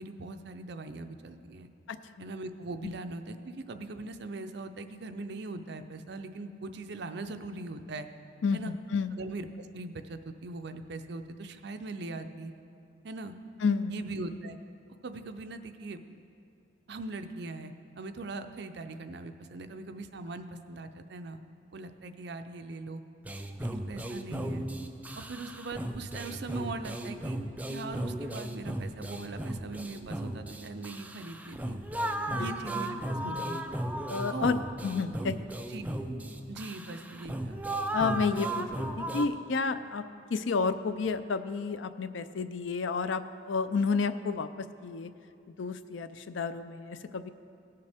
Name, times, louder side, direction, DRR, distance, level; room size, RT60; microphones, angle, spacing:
voice 1, 0.0-1.7 2.2-8.1 8.5-8.7 9.2-12.5 13.0-13.3 13.9-14.6 15.0-16.0 16.9-21.4 21.7-23.0 23.6-24.7 25.2-27.4 27.7-31.8 32.4-33.6 34.3-34.6 35.7-35.8 36.5-37.6, right 3 dB, 60° right, 8 dB, 0.5 m, -40 dB
voice 2, 8.4-9.1 13.6-14.0 32.3-32.5 33.2-33.4 34.1-35.7 37.9-40.0 40.3-45.1 45.6-47.3, left 4 dB, 80° left, 12 dB, 0.5 m, -31 dB
sound 1, 23.2-39.3, right 1 dB, 10° right, 0.4 m, -36 dB
17.5 x 6.7 x 3.5 m, 2.5 s
head